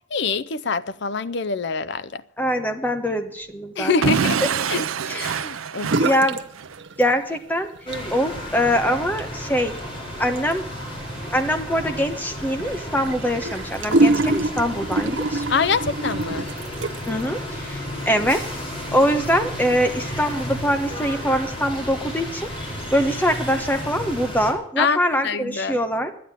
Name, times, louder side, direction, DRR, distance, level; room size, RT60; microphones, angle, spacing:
voice 1, 0.1-2.2 3.8-4.4 4.7-4.9 5.1-5.9 15.5-16.5 24.8-25.8, left 4 dB, 55° left, 0.6 m, -25 dB
voice 2, 2.4-4.1 4.4-4.5 5.1-5.4 6.0-6.4 7.0-7.7 8.1-9.7 10.2-10.7 11.3-15.4 17.1-18.4 18.9-22.5 22.9-26.1, equal, 10° left, 1.1 m, -23 dB
Explosion / Shatter, 4.0-6.8, right 6 dB, 90° right, 0.6 m, -25 dB
sound 1, 5.8-6.4 6.7-7.4 7.8-17.2, right 2 dB, 60° right, 0.8 m, -26 dB
sound 2, 7.9-24.5, equal, 25° left, 4.5 m, -33 dB
11.0 x 9.5 x 9.8 m
head